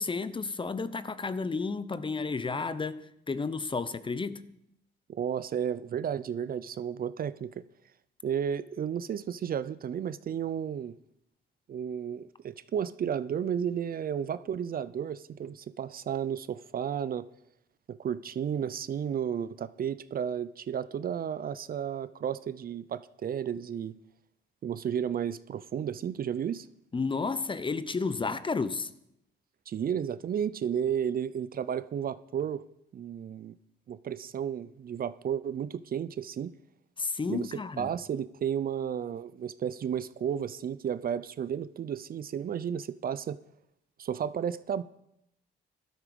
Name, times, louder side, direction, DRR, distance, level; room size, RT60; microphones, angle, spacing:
voice 1, 0.0-4.4 26.9-28.9 37.0-37.9, left 4 dB, 25° left, 0.8 m, -32 dB
voice 2, 5.1-7.6 8.2-10.9 11.7-17.3 17.9-23.9 24.6-26.7 29.7-32.6 32.9-33.5 33.9-36.5 37.3-37.5 37.8-43.4 44.0-44.8, right 8 dB, 45° right, 0.5 m, -33 dB
14.0 x 12.5 x 5.3 m
cardioid pair, 90°, 20 cm